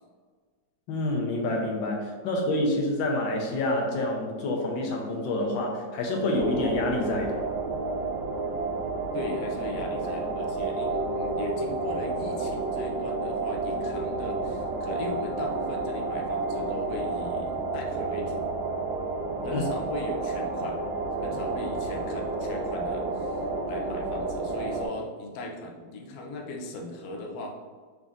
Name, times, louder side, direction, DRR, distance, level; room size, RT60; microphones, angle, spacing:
voice 1, 0.9-7.4 19.5-19.6, left 1 dB, 85° left, 0 dB, 1.4 m, -27 dB
sound 1, 6.4-24.9, right 3 dB, 90° right, 1.3 m, -31 dB
voice 2, 9.1-18.4 19.4-20.8 21.2-23.4 23.7-27.5, left 2 dB, 70° left, 1 dB, 0.9 m, -38 dB
4.0 x 3.5 x 2.4 m, 1.5 s
omnidirectional pair, 2.0 m